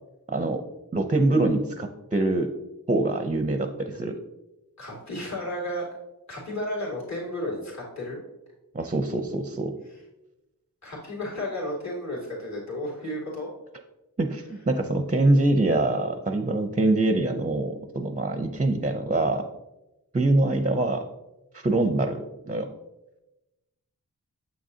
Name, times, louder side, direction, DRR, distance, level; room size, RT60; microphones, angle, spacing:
voice 1, 0.3-0.6 0.9-2.5 2.9-4.1 8.7-9.7 14.2-19.4 20.1-21.0 21.5-22.7, right 2 dB, 20° right, 6 dB, 0.5 m, -24 dB
voice 2, 4.8-5.8 6.3-8.2 9.9-10.0 10.8-13.5, left 1 dB, 50° left, -5 dB, 2.3 m, -33 dB
7.0 x 6.2 x 2.7 m, 0.98 s
wide cardioid pair, 45°, 36 cm